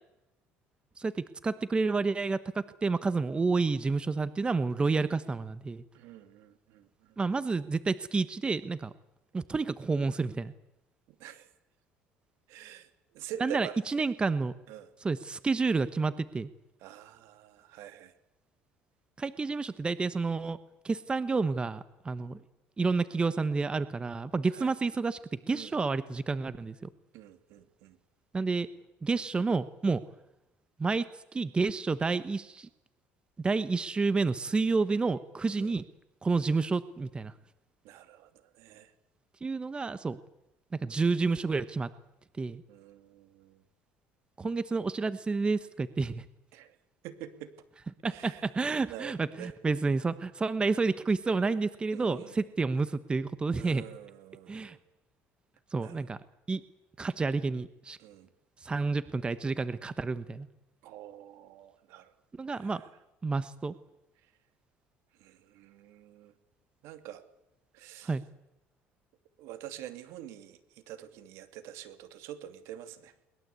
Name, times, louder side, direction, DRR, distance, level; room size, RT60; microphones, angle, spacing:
voice 1, 1.0-5.8 7.2-8.9 9.3-10.5 13.4-14.5 15.0-16.5 19.2-20.6 20.8-22.4 22.8-26.8 28.3-28.7 29.0-30.0 30.8-31.1 31.3-32.7 33.4-35.8 36.2-37.3 39.4-40.2 40.7-41.9 42.4-42.6 44.4-46.2 48.0-53.8 54.5-54.8 55.7-56.2 56.5-56.6 57.0-58.0 58.6-60.5 62.3-62.8 63.2-63.7 68.0-68.2, right 4 dB, 20° right, 14 dB, 1.1 m, -29 dB
voice 2, 5.9-7.2 11.2-11.5 12.5-12.9 13.1-14.1 14.7-14.9 16.8-18.1 24.5-24.7 25.5-25.7 27.1-28.0 35.5-35.8 37.8-38.9 42.7-43.6 46.5-46.8 47.0-47.5 48.1-48.5 48.8-49.5 51.9-52.3 53.5-54.8 55.8-56.0 58.0-58.3 60.8-62.1 62.5-62.8 65.2-66.3 66.8-67.2 67.7-68.1 69.4-73.1, right 12 dB, 75° right, 11 dB, 2.6 m, -46 dB
22.0 x 21.0 x 8.4 m, 0.89 s
supercardioid pair, 105°, 5 cm